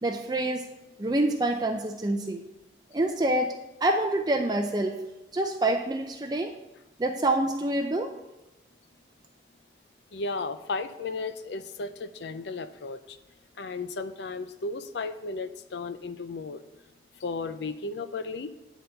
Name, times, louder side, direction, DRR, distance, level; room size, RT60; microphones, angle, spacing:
voice 1, 0.0-0.6 1.0-2.4 2.9-3.5 3.8-5.0 5.3-6.5 7.0-8.1, right 1 dB, 20° right, 4 dB, 0.5 m, -26 dB
voice 2, 10.1-13.2 13.6-16.6 17.2-18.5, left 3 dB, 70° left, 11 dB, 0.5 m, -34 dB
9.8 x 4.1 x 6.6 m, 1.0 s
head